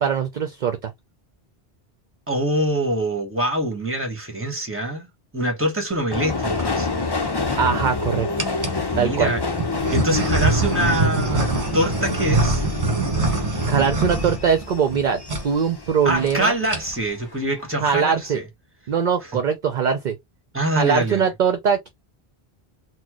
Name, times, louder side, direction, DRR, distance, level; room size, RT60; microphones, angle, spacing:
voice 1, 0.0-0.9 7.6-8.3 9.0-9.3 13.7-16.5 17.8-18.4 18.9-20.2 20.8-21.9, right 7 dB, 55° right, 0.7 m, -21 dB
voice 2, 2.3-5.1 5.3-6.9 8.9-9.4 9.9-11.5 11.7-12.6 16.0-18.4 19.2-19.4 20.5-21.3, right 1 dB, 15° right, 1.3 m, -24 dB
Subway metro underground, 6.1-16.8 17.2-17.9 18.2-18.3, left 4 dB, 30° left, 0.6 m, -28 dB
sound 1, 6.3-6.7 7.4-7.9 8.4-8.8 9.6-15.0 15.3-15.5 15.8-15.9 16.1-16.3 16.6-17.1, right 3 dB, 35° right, 1.2 m, -24 dB
4.1 x 2.1 x 2.9 m
omnidirectional pair, 1.0 m